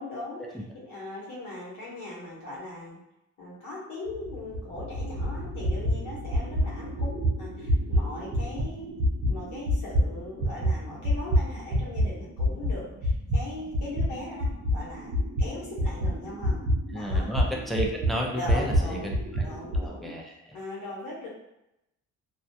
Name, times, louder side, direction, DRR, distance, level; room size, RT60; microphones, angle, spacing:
voice 1, 0.0-0.4 0.7-3.0 3.4-9.0 9.3-15.1 15.4-16.6 16.9-17.3 18.3-19.1 19.4-20.1 20.5-21.3, left 2 dB, 80° left, -6 dB, 0.9 m, -39 dB
sound 1, 4.1-12.1 12.4-19.9, equal, 65° right, 0.7 m, -28 dB
voice 2, 16.9-19.4 19.7-20.3, equal, ahead, -1 dB, 0.4 m, -32 dB
2.2 x 2.2 x 2.7 m, 0.85 s
cardioid pair, 90°, 30 cm